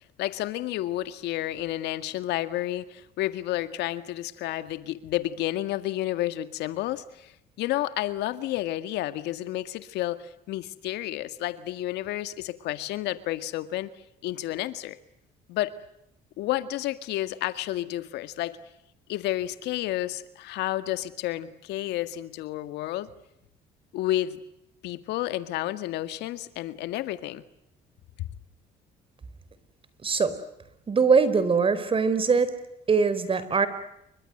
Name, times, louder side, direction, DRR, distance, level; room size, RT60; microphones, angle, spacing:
voice 1, 0.2-13.9 14.2-15.0 15.5-15.7 16.4-18.6 19.1-23.1 23.9-24.4 24.8-27.4, left 14 dB, 85° left, 12 dB, 2.0 m, -31 dB
voice 2, 30.0-30.3 30.9-32.5 32.9-33.7, right 5 dB, 30° right, 14 dB, 4.4 m, -22 dB
29.5 x 24.5 x 8.0 m, 0.81 s
cardioid pair, 110°, 17 cm